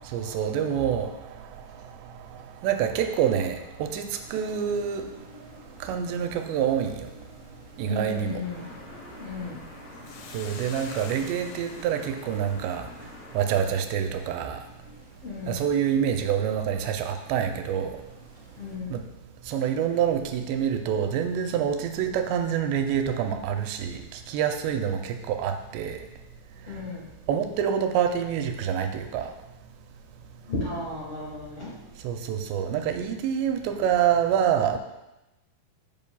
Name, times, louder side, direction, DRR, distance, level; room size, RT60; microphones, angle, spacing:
voice 1, 0.0-1.5 2.3-5.1 5.8-7.1 7.8-8.4 10.3-12.9 13.3-14.6 15.5-17.9 18.9-19.0 19.5-26.1 27.3-29.3 32.0-34.8, right 8 dB, 90° right, 6 dB, 2.8 m, -27 dB
sound 1, 4.2-18.8, equal, 30° right, 2.5 m, -52 dB
voice 2, 7.8-8.7 9.2-9.6 15.2-15.5 18.6-18.9 26.7-27.0 30.5-31.7, left 3 dB, 40° left, -7 dB, 2.2 m, -34 dB
sound 2, 8.4-13.4, left 2 dB, 60° left, 3.3 m, -46 dB
Hiss, 10.0-14.6, left 5 dB, 85° left, 2.8 m, -48 dB
11.0 x 7.0 x 2.3 m, 0.96 s
omnidirectional pair, 4.9 m